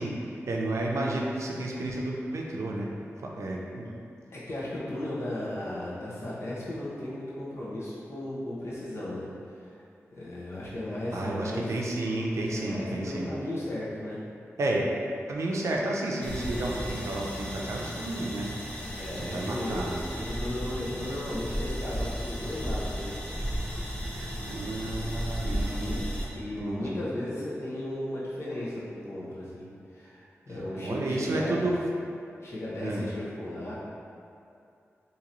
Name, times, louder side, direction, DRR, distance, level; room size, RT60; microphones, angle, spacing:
voice 1, 0.0-2.9 3.2-4.0 11.1-13.3 14.6-14.9 15.3-18.5 19.2-20.2 24.0-26.3 26.6-27.0 30.5-30.6 30.8-31.8 32.8-33.1, right 2 dB, 75° right, -2 dB, 0.5 m, -31 dB
voice 2, 4.3-9.8 10.1-11.7 12.5-14.2 18.8-23.1 25.3-26.0 26.3-29.6 29.9-31.7 32.4-33.7, left 1 dB, 60° left, -7 dB, 1.0 m, -35 dB
sound 1, 16.2-26.2, equal, 20° left, 0.7 m, -34 dB
3.0 x 2.8 x 3.9 m, 2.5 s
wide cardioid pair, 70°, 5 cm